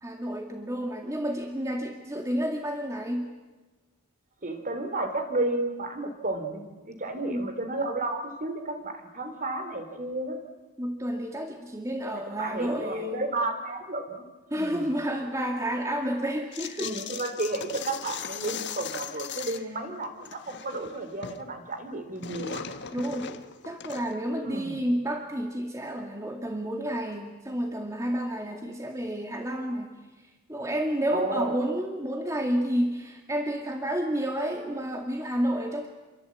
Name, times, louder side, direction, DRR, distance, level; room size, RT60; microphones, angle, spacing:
voice 1, 0.0-3.3 7.3-7.5 10.8-13.3 14.5-17.0 19.3-19.5 22.9-29.9 30.2-35.9, equal, 15° right, 3 dB, 2.1 m, -30 dB
voice 2, 4.4-10.4 12.1-14.2 14.5-14.8 16.8-22.6 24.4-24.8 31.1-31.6, right 2 dB, 40° right, 8 dB, 3.4 m, -32 dB
sound 1, 16.5-19.7 20.0-21.4 21.7-24.3, left 7 dB, 55° left, 1.5 m, -38 dB
28.0 x 23.5 x 8.6 m, 1.2 s
head